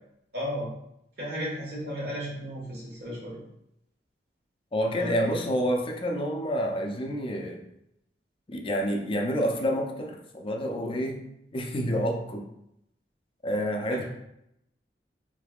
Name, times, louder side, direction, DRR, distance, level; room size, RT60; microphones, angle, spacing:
voice 1, 0.3-0.7 1.2-3.4 5.0-5.4 13.9-14.0, equal, 65° right, -4 dB, 1.4 m, -34 dB
voice 2, 4.7-7.6 8.5-11.2 11.5-12.5 13.4-14.0, equal, 30° left, 2 dB, 0.5 m, -28 dB
3.8 x 3.4 x 2.4 m, 0.80 s
head